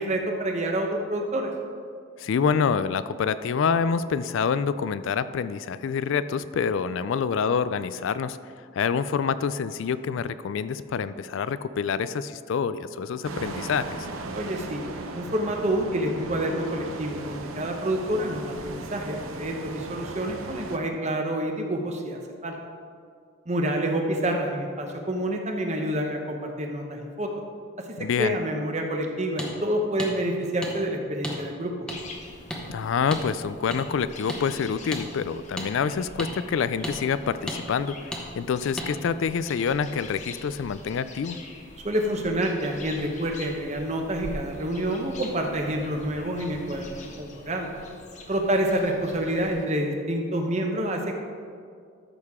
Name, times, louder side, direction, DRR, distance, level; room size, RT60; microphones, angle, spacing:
voice 1, 0.0-1.5 14.3-14.8 15.1-22.6 23.5-27.3 27.8-31.7 41.8-47.7 48.3-51.2, right 1 dB, 35° right, 3 dB, 0.9 m, -28 dB
voice 2, 2.2-8.4 8.7-13.9 28.0-28.4 32.7-41.4, left 6 dB, 70° left, 14 dB, 0.3 m, -27 dB
sound 1, 13.2-20.8, right 2 dB, 80° right, 0.8 m, -37 dB
sound 2, 29.4-29.5 30.0-30.1 30.6-30.7 31.2-31.4 31.9-32.0 32.5-32.6 33.1-33.2 33.7-33.8 34.3-34.4 34.9-35.0 35.6-35.7 36.2-36.3 36.8-37.0 37.5-37.6 38.1-38.2 38.8-38.9, equal, 5° left, 1.0 m, -32 dB
sound 3, 31.9-49.7, left 2 dB, 35° left, 0.9 m, -44 dB
12.5 x 6.5 x 3.6 m, 2.2 s
head